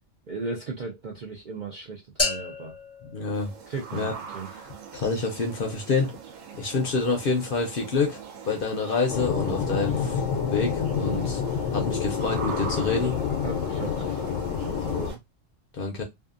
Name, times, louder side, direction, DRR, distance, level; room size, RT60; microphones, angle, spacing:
voice 1, 0.3-2.7 3.7-4.1 4.3-4.5 8.7-8.9 13.4-14.3 14.6-15.2, right 4 dB, 60° right, 0.5 m, -36 dB
sound 1, 2.2-4.2, left 3 dB, 20° left, 0.4 m, -32 dB
voice 2, 3.0-3.5 3.9-4.1 4.9-6.1 6.5-11.4 11.7-13.2 15.7-16.0, left 4 dB, 55° left, 0.7 m, -27 dB
sound 2, 3.3-15.1, right 6 dB, 90° right, 1.0 m, -41 dB
sound 3, 9.1-15.1, left 7 dB, 85° left, 1.0 m, -28 dB
2.6 x 2.4 x 2.4 m
omnidirectional pair, 1.3 m